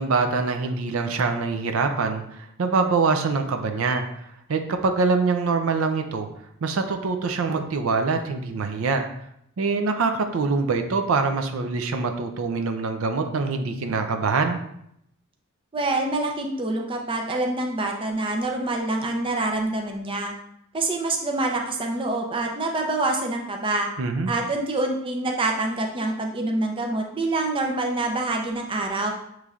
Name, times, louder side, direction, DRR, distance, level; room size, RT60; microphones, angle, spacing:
voice 1, 0.0-4.0 4.5-6.3 6.6-9.1 9.6-14.6 24.0-24.3, right 4 dB, 75° right, 6 dB, 0.5 m, -24 dB
voice 2, 15.7-20.3 20.7-23.9 24.3-29.1, right 2 dB, 25° right, 2 dB, 0.5 m, -26 dB
6.8 x 3.1 x 2.4 m, 0.75 s
head